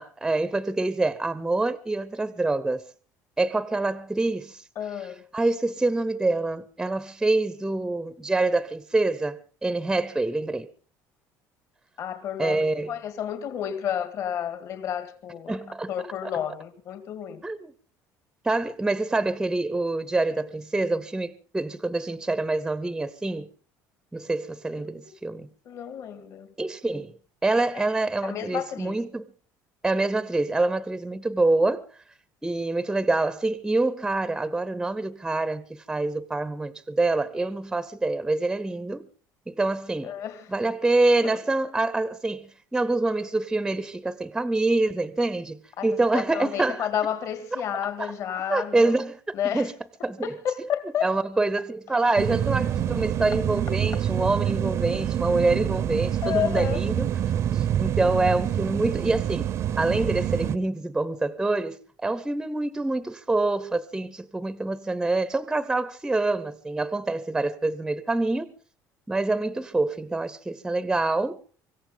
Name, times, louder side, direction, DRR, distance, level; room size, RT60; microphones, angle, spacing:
voice 1, 0.0-2.8 3.4-4.6 5.3-10.7 12.4-12.9 15.5-15.9 17.4-17.7 18.4-23.5 24.1-25.5 26.6-27.1 27.4-29.3 29.8-31.8 32.4-39.1 39.5-40.1 40.5-46.9 48.0-48.1 48.5-49.7 50.0-50.4 51.0-57.1 57.5-59.5 59.8-68.5 69.1-71.4, right 2 dB, 5° right, 0.7 m, -26 dB
voice 2, 4.8-5.2 12.0-15.5 15.9-17.4 24.8-24.9 25.7-26.5 27.7-27.8 28.2-29.0 40.0-40.5 41.2-41.4 45.8-48.9 49.3-49.7 50.2-51.1 52.0-52.2 56.2-56.8, left 9 dB, 50° left, 1.9 m, -31 dB
sound 1, 52.2-60.6, right 10 dB, 45° right, 0.7 m, -26 dB
25.0 x 14.5 x 3.9 m
cardioid pair, 150°, 7 cm